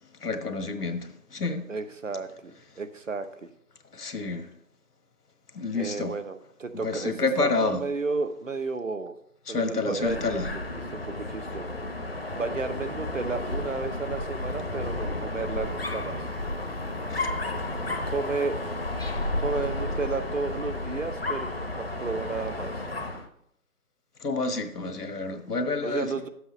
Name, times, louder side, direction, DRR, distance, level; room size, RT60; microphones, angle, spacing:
voice 1, 0.2-1.7 3.9-4.5 5.5-6.1 6.7-7.8 9.5-10.5 17.1-17.3 24.2-26.1, left 3 dB, 85° left, 1.5 m, -29 dB
voice 2, 1.7-3.5 5.7-9.1 9.5-10.4 10.9-11.8 12.3-16.3 18.1-18.6 19.4-22.7 25.8-26.3, right 4 dB, 55° right, 0.8 m, -32 dB
Dog, 10.0-23.3, left 2 dB, 40° left, 0.9 m, -32 dB
12.5 x 7.9 x 3.1 m
figure-of-eight pair, 175°, 45 cm